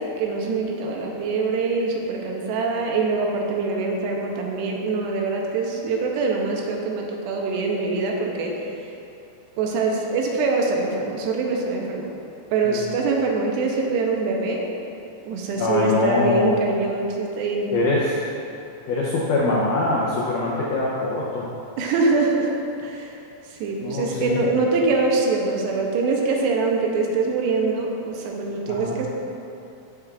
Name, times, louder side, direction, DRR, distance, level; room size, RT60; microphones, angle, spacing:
voice 1, 0.0-8.5 9.6-12.1 12.5-14.6 15.3-17.7 21.8-22.5 22.8-23.1 23.6-29.1, right 3 dB, 85° right, 0 dB, 2.9 m, -24 dB
voice 2, 15.5-16.5 17.7-18.2 18.9-21.5 23.8-24.5 28.7-29.0, left 2 dB, 85° left, -5 dB, 1.8 m, -23 dB
14.5 x 4.8 x 2.4 m, 2.8 s
omnidirectional pair, 4.8 m